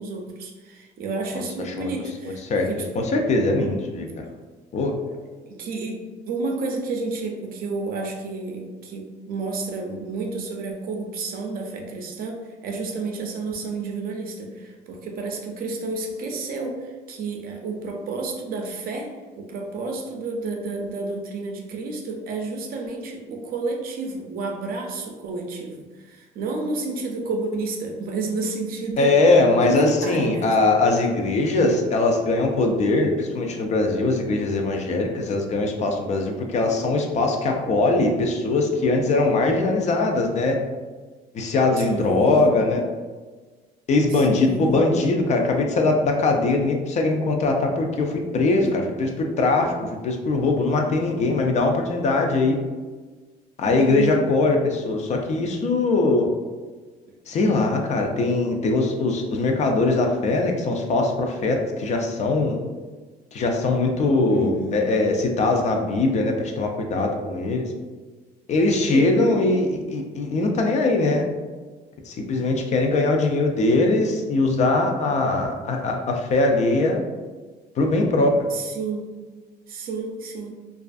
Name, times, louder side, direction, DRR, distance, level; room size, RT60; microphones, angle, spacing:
voice 1, 0.0-3.1 5.1-5.2 5.5-29.1 29.6-30.7 41.8-42.6 44.1-44.9 48.6-48.7 53.6-54.3 64.3-64.9 68.9-69.4 78.5-79.2 79.7-80.5, right 3 dB, 60° right, 2 dB, 0.5 m, -31 dB
voice 2, 1.3-1.9 2.5-2.7 3.0-4.2 4.7-4.9 29.0-40.6 41.3-42.8 43.9-52.6 53.6-56.3 57.3-62.6 63.3-67.6 68.5-71.3 72.1-77.0 77.8-78.4, left 2 dB, 45° left, 3 dB, 0.4 m, -21 dB
2.4 x 2.4 x 2.3 m, 1.3 s
cardioid pair, 110°, 17 cm